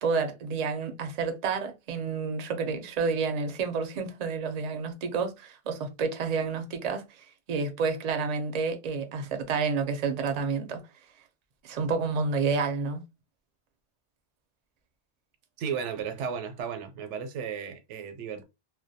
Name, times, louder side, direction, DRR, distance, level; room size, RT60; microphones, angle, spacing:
voice 1, 0.0-7.0 7.5-10.8 11.6-13.0, right 5 dB, 55° right, 0.4 m, -29 dB
voice 2, 15.6-18.4, right 7 dB, 90° right, 0.9 m, -34 dB
2.2 x 2.2 x 2.6 m
omnidirectional pair, 1.2 m